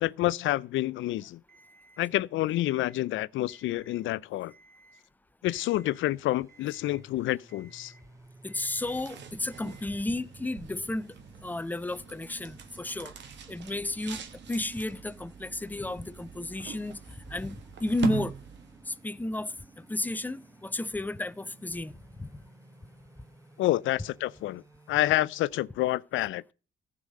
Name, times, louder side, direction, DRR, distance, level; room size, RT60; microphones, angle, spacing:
voice 1, 0.0-1.4 2.0-4.5 5.4-7.9 23.6-24.6 24.9-26.4, left 16 dB, 80° left, 0.4 m, -28 dB
Alarm, 1.5-2.0 2.5-3.0 3.4-4.0 4.5-5.0 5.5-6.0 6.5-7.0 7.5-8.0 8.5-9.0 9.5-10.0, right 3 dB, 50° right, 3.9 m, -58 dB
sound 1, 5.7-25.4, right 2 dB, 15° right, 1.3 m, -56 dB
voice 2, 8.4-13.1 13.5-18.3 18.9-22.3, left 2 dB, 10° left, 0.5 m, -33 dB
sound 2, 8.6-19.0, right 7 dB, 65° right, 1.4 m, -42 dB
14.5 x 4.9 x 6.4 m
cardioid pair, 90°, 20 cm